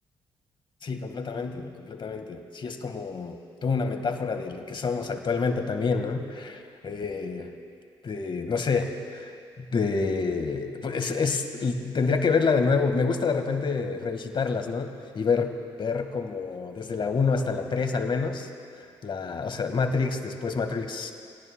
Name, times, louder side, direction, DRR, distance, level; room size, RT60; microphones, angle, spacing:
voice 1, 0.8-7.5 8.0-9.3 9.6-18.5 19.0-21.1, left 4 dB, 50° left, 6 dB, 1.6 m, -28 dB
25.5 x 18.0 x 2.2 m, 2.3 s
supercardioid pair, 55°, 11 cm